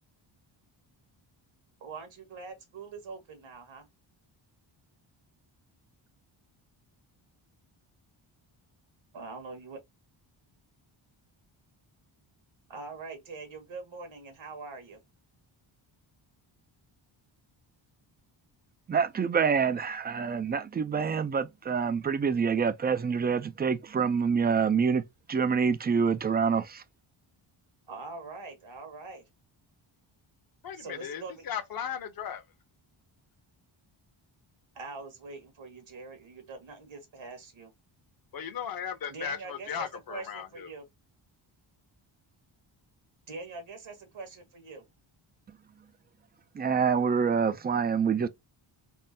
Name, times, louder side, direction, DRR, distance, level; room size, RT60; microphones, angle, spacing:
voice 1, 1.8-3.9 9.1-9.8 12.7-15.0 27.9-29.2 30.7-31.5 34.7-37.7 39.1-40.8 43.3-44.8, right 3 dB, 65° right, 1.4 m, -43 dB
voice 2, 18.9-25.0 25.3-26.8 46.5-48.3, right 6 dB, 25° right, 0.3 m, -26 dB
voice 3, 30.6-32.4 38.3-40.7, left 8 dB, 45° left, 0.8 m, -36 dB
3.6 x 2.1 x 2.6 m
cardioid pair, 90°, 49 cm